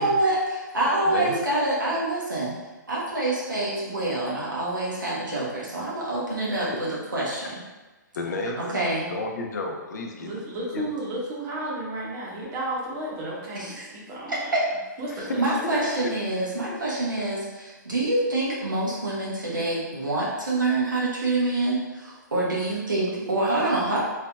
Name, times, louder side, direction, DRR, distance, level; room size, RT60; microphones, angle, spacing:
voice 1, 0.0-2.5 2.9-7.5 8.6-9.1 13.6-13.9 14.3-14.4 15.4-24.0, right 2 dB, 85° right, -6 dB, 1.2 m, -26 dB
voice 2, 1.0-1.4 8.1-8.6 9.1-10.4 10.7-10.9, left 3 dB, 65° left, 2 dB, 0.6 m, -31 dB
voice 3, 10.2-14.6 15.0-16.0, right 1 dB, 30° right, -4 dB, 1.1 m, -33 dB
3.9 x 3.2 x 2.3 m, 1.2 s
figure-of-eight pair, 125°, 10 cm